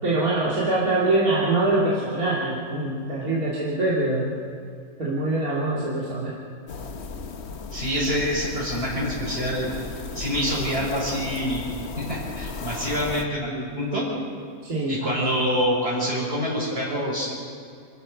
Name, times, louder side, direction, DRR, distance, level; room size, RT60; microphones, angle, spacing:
voice 1, 0.0-4.3 5.0-6.4 14.6-15.0, right 2 dB, 80° right, -6 dB, 3.5 m, -24 dB
sound 1, 6.7-13.2, left 4 dB, 50° left, 1.3 m, -35 dB
voice 2, 7.7-9.7 10.1-11.6 12.0-14.1 14.9-17.3, equal, 45° right, -10 dB, 6.1 m, -26 dB
28.5 x 14.0 x 6.6 m, 2.4 s
omnidirectional pair, 1.5 m